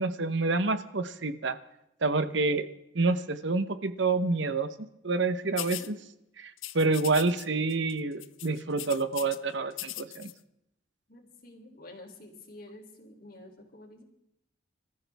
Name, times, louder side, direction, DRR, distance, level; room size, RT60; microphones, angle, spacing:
voice 1, 0.0-1.6 2.0-2.7 2.9-4.7 5.0-6.0 6.4-10.3, right 3 dB, 65° right, 11 dB, 1.0 m, -28 dB
sound 1, 5.6-5.9 6.6-7.4 7.7-7.9 8.2-9.4 9.7-10.3, left 15 dB, 80° left, 0.7 m, -39 dB
voice 2, 11.1-14.0, left 1 dB, 45° left, 2 dB, 3.4 m, -49 dB
27.5 x 14.5 x 3.5 m, 0.81 s
head